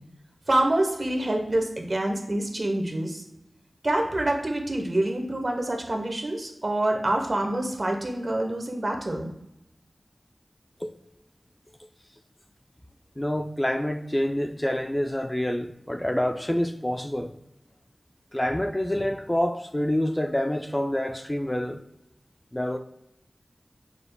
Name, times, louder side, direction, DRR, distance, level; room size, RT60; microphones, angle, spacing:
voice 1, 0.5-3.2 3.8-9.3, right 1 dB, 55° right, 1.0 m, -26 dB
voice 2, 13.2-17.3 18.3-21.8 22.5-22.8, left 1 dB, 20° left, 0.4 m, -27 dB
6.2 x 3.3 x 2.3 m
wide cardioid pair, 50°, 0 cm